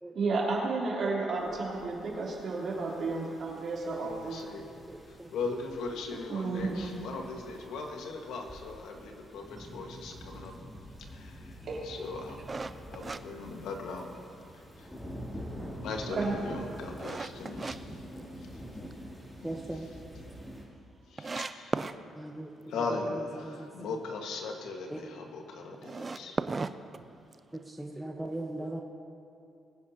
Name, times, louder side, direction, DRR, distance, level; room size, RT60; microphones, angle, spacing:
voice 1, 0.1-4.4 6.3-6.8 11.6-11.8 16.1-16.3, right 3 dB, 55° right, -4 dB, 3.2 m, -32 dB
sound 1, 1.4-20.6, equal, 15° left, 2.7 m, -47 dB
voice 2, 4.0-4.7 5.1-10.5 11.1-11.5 11.8-12.4 12.9-14.1 14.8-14.9 15.8-18.0 19.4-20.0 21.1-21.9 22.7-26.4, left 3 dB, 80° left, 2 dB, 1.5 m, -39 dB
voice 3, 4.9-5.3 19.4-19.9 22.2-22.5 23.4-23.7 24.9-25.0 27.8-28.8, right 1 dB, 10° right, 0 dB, 0.9 m, -38 dB
sound 2, 12.5-14.2 14.6-14.7 15.2-17.8 18.2-18.9 19.3-19.4 19.7-19.8 20.0-20.1 20.7-20.8 21.2-22.0 25.7-27.6, right 4 dB, 30° right, 0.4 m, -36 dB
21.5 x 9.7 x 2.8 m, 2.5 s
cardioid pair, 90°, 0 cm